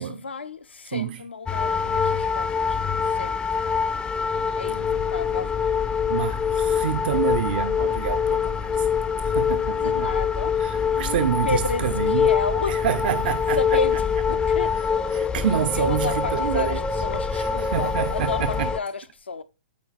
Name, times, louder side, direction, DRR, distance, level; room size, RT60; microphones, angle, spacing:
voice 1, 0.0-2.8 3.1-3.4 3.8-4.2 4.6-5.5 9.5-10.6 10.9-12.8 13.6-14.8 15.7-19.4, left 4 dB, 80° left, 0.8 m, -32 dB
sound 1, 1.5-18.8, left 6 dB, 15° left, 0.4 m, -24 dB
voice 2, 6.1-8.9 9.2-10.1 10.6-12.3 12.7-13.6 15.1-16.8 17.3-18.7, right 9 dB, 55° right, 0.5 m, -27 dB
8.5 x 4.1 x 4.1 m
hypercardioid pair, 115°, 6 cm